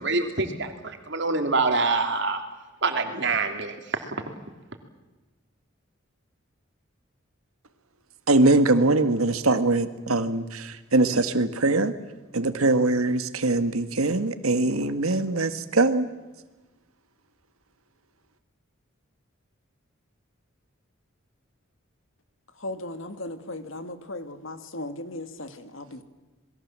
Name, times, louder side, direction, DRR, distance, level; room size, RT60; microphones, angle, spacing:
voice 1, 0.0-2.4 2.8-3.7, right 3 dB, 55° right, 5 dB, 2.9 m, -25 dB
voice 2, 8.3-11.9 12.3-16.1, right 2 dB, 90° right, 10 dB, 1.6 m, -22 dB
voice 3, 22.6-26.0, left 1 dB, 70° left, 9 dB, 2.1 m, -37 dB
27.5 x 21.5 x 7.5 m, 1.2 s
head